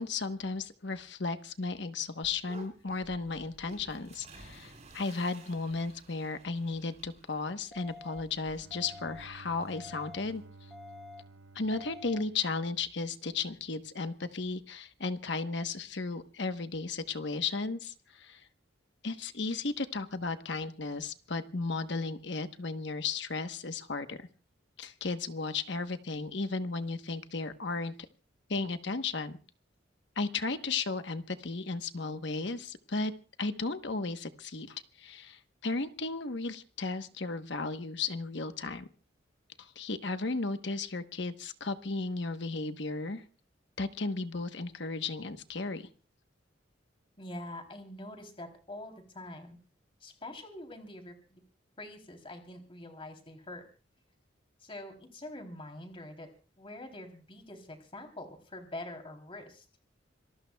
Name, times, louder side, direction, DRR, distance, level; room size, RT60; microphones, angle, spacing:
voice 1, 0.0-10.4 11.5-18.4 19.0-24.3 24.8-27.9 28.5-29.4 30.2-33.1 33.4-38.9 39.6-43.2 43.8-45.9, left 3 dB, 65° left, 9 dB, 1.1 m, -35 dB
sound 1, 2.2-10.5, right 2 dB, 35° right, 5.3 m, -55 dB
sound 2, 7.7-8.2 8.7-9.2 9.7-10.2 10.7-11.2 11.7-12.2, left 3 dB, ahead, 2.1 m, -48 dB
Bowed string instrument, 8.3-13.2, right 3 dB, 80° right, 0.9 m, -54 dB
voice 2, 47.2-49.6 50.0-51.4 51.8-53.6 54.6-56.3 56.6-59.6, left 1 dB, 30° left, 4 dB, 3.3 m, -45 dB
26.5 x 19.0 x 2.3 m, 0.37 s
head